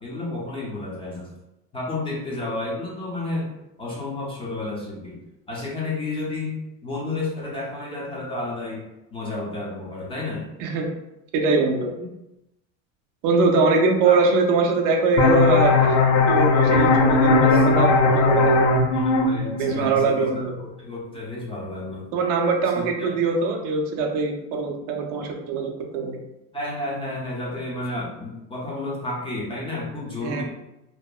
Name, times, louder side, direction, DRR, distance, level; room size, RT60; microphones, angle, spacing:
voice 1, 0.0-1.3 1.7-3.5 3.8-5.2 5.5-6.6 6.8-8.8 9.1-10.5 12.0-12.1 14.0-14.2 17.5-17.6 18.9-20.4 20.8-22.1 22.7-23.1 26.5-30.4, left 2 dB, 15° left, -5 dB, 0.5 m, -31 dB
voice 2, 11.3-11.9 13.2-16.0 16.3-18.7 19.6-20.5 22.1-26.2 30.2-30.4, right 4 dB, 55° right, 2 dB, 0.5 m, -22 dB
sound 1, 15.2-20.6, left 3 dB, 65° left, 0.5 m, -19 dB
2.8 x 2.0 x 2.2 m, 0.92 s
supercardioid pair, 125°, 40 cm